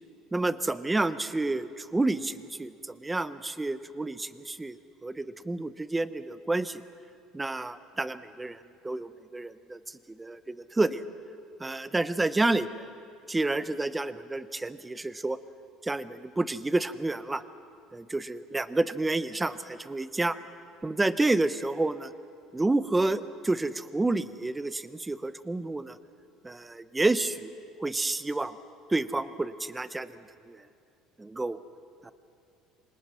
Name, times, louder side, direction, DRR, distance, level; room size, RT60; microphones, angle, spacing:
voice 1, 0.3-4.8 5.0-6.8 7.3-8.6 8.8-11.0 11.6-12.9 13.3-15.4 15.8-17.4 17.9-20.4 20.8-22.1 22.5-26.0 26.4-27.5 27.8-28.6 28.9-30.2 30.5-30.6 31.2-31.6 32.0-32.1, right 2 dB, 10° right, 14 dB, 0.7 m, -29 dB
27.5 x 25.5 x 5.7 m, 2.6 s
cardioid pair, 160°, 0 cm